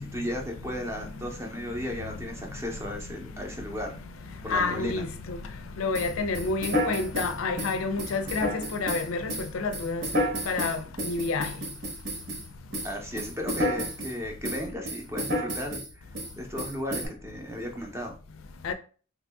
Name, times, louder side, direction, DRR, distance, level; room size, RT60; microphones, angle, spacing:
voice 1, 0.0-4.0 4.4-5.0 12.8-16.0 16.4-18.2, left 1 dB, 15° right, 0.6 m, -35 dB
voice 2, 4.5-5.4 5.8-10.0 10.5-11.5 18.6-18.7, left 4 dB, 80° left, 0.4 m, -29 dB
sound 1, 5.9-12.5 12.7-14.2 14.4-15.9 16.2-16.3 16.6-17.1, equal, 55° right, 0.9 m, -31 dB
2.9 x 2.6 x 3.4 m
head